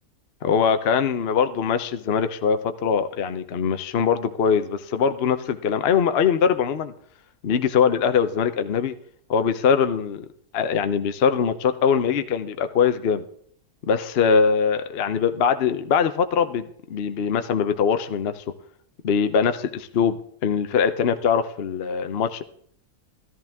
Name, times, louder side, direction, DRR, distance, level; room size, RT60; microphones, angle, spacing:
voice 1, 0.4-6.9 7.4-8.9 9.3-10.3 10.5-13.3 13.9-18.4 19.0-22.4, left 6 dB, 50° left, 9 dB, 0.8 m, -22 dB
14.0 x 13.5 x 3.5 m, 0.62 s
omnidirectional pair, 1.6 m